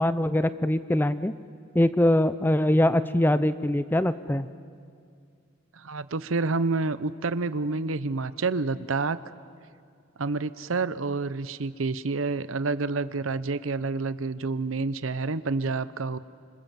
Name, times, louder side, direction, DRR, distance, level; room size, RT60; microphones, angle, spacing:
voice 1, 0.0-1.3 1.7-4.5, left 1 dB, 10° left, 13 dB, 0.6 m, -23 dB
voice 2, 5.7-9.2 10.2-16.2, right 3 dB, 80° right, 14 dB, 0.8 m, -28 dB
26.5 x 26.5 x 7.5 m, 2.2 s
head